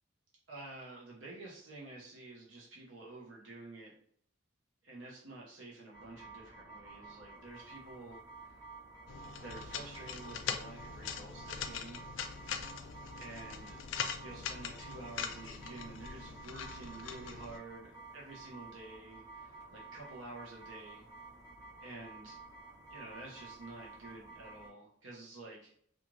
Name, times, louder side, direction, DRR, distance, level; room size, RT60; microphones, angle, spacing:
voice 1, 0.5-3.9 4.8-8.6 9.4-12.0 13.2-13.8 14.2-21.0 21.8-22.4 22.9-25.7, right 2 dB, 85° right, -4 dB, 0.7 m, -49 dB
sound 1, 5.9-24.7, right 3 dB, 20° right, 1.1 m, -52 dB
sound 2, 9.1-17.6, left 7 dB, 80° left, 0.3 m, -42 dB
3.1 x 2.4 x 2.4 m, 0.62 s
head